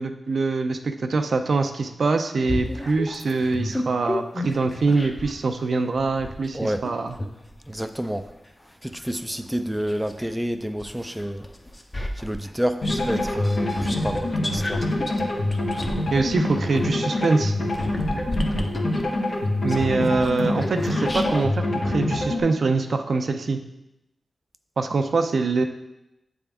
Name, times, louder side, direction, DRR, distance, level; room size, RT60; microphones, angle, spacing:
voice 1, 0.0-7.2 16.1-17.6 19.6-23.6 24.8-25.6, right 3 dB, 70° right, 6 dB, 0.5 m, -24 dB
sound 1, 2.4-5.4 5.9-10.3 10.8-21.5, left 1 dB, 25° left, 0.7 m, -33 dB
voice 2, 7.7-8.3 8.8-11.5 12.2-14.8, equal, 5° right, 8 dB, 0.4 m, -29 dB
sound 2, 12.8-22.4, left 1 dB, 75° left, 1.2 m, -25 dB
7.6 x 3.6 x 3.4 m, 0.90 s
cardioid pair, 65°, 0 cm